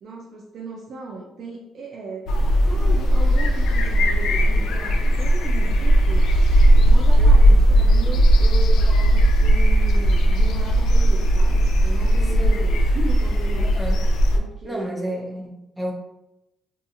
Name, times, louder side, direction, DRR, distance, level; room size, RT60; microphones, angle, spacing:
voice 1, 0.0-2.3 2.6-6.3 6.8-13.8 14.3-15.2, right 3 dB, 55° right, -1 dB, 0.4 m, -36 dB
sound 1, 2.3-14.4, right 1 dB, 75° left, 0.4 m, -17 dB
voice 2, 7.2-7.6 12.3-12.7 13.6-14.0 14.6-15.9, equal, 5° right, 0 dB, 0.6 m, -32 dB
2.7 x 2.4 x 2.6 m, 0.91 s
cardioid pair, 125°, 0 cm